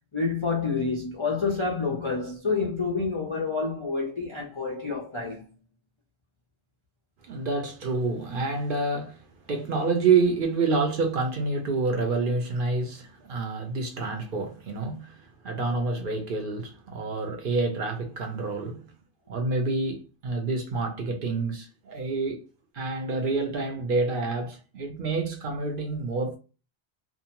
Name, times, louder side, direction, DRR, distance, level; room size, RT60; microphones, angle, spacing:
voice 1, 0.1-5.5, left 4 dB, 45° left, 0.4 m, -28 dB
voice 2, 7.3-18.9 19.3-22.4 22.7-26.4, right 3 dB, 55° right, 0.7 m, -28 dB
2.6 x 2.1 x 2.8 m
omnidirectional pair, 1.2 m